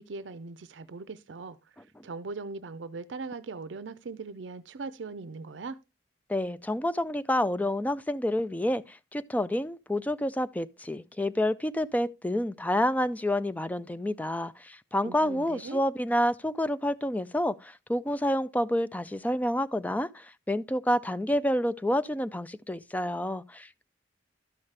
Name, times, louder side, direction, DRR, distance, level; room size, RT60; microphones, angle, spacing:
voice 1, 0.0-1.6 2.0-5.8 15.0-15.8, right 4 dB, 75° right, 0.5 m, -40 dB
voice 2, 6.3-23.8, left 1 dB, 10° left, 0.4 m, -29 dB
12.5 x 5.7 x 3.3 m
head